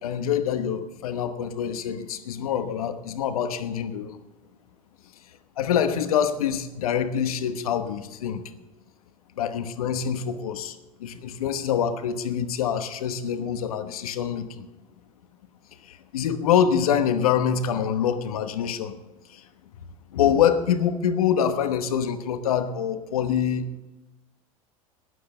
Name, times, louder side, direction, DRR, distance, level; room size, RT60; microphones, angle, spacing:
voice 1, 0.0-4.2 5.6-8.4 9.4-14.7 15.8-19.0 19.3-19.5 20.1-23.8, left 8 dB, 80° left, 10 dB, 1.1 m, -25 dB
12.5 x 9.6 x 6.8 m, 1.1 s
hypercardioid pair, 85°, 18 cm